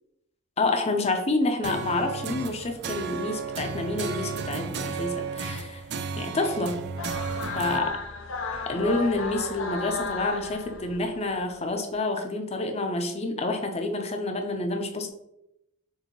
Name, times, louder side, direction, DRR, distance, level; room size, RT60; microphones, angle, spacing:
voice 1, 0.6-5.8 6.2-7.2 7.5-8.0 8.7-15.1, left 2 dB, 30° left, 5 dB, 0.6 m, -28 dB
sound 1, 1.6-7.8, right 5 dB, 55° right, 0.4 m, -33 dB
sound 2, 7.0-11.3, left 4 dB, 75° left, 0.5 m, -34 dB
6.6 x 2.7 x 3.0 m, 0.84 s
head